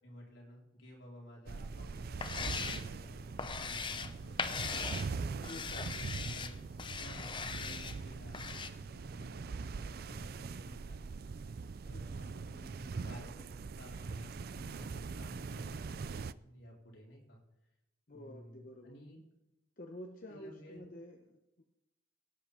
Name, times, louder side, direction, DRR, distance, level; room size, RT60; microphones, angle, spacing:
voice 1, 0.0-4.4 4.9-11.2 11.8-17.4 18.1-19.2 20.3-20.8, equal, 75° left, -2 dB, 4.4 m, -53 dB
sound 1, 1.5-16.3, right 4 dB, 50° right, 0.4 m, -42 dB
sound 2, 1.9-8.7, left 5 dB, 25° left, 0.6 m, -40 dB
voice 2, 5.3-5.9 9.2-9.4 11.9-12.2 18.1-19.0 19.8-21.6, left 1 dB, 45° left, 3 dB, 1.0 m, -50 dB
17.0 x 9.0 x 5.2 m, 0.94 s
head